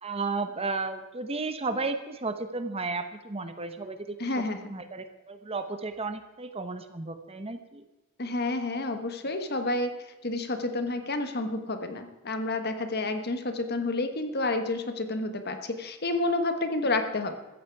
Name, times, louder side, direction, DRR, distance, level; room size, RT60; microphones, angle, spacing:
voice 1, 0.0-4.3 4.7-7.8, right 3 dB, 25° right, 9 dB, 0.9 m, -33 dB
voice 2, 4.2-4.7 8.2-9.9 10.2-17.4, left 2 dB, 45° left, 7 dB, 1.4 m, -30 dB
16.0 x 14.0 x 4.7 m, 1.1 s
head